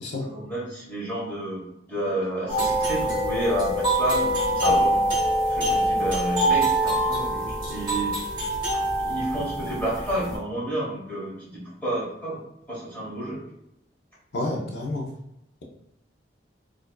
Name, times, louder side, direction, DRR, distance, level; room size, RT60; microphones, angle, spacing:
voice 1, 0.2-5.0 5.4-8.1 9.0-12.4 12.7-13.4, right 1 dB, 10° left, -8 dB, 1.1 m, -30 dB
sound 1, 2.5-10.3, right 1 dB, 25° right, 1.0 m, -24 dB
voice 2, 14.3-15.1, left 2 dB, 75° left, -1 dB, 0.6 m, -29 dB
4.3 x 2.5 x 2.2 m, 0.80 s
head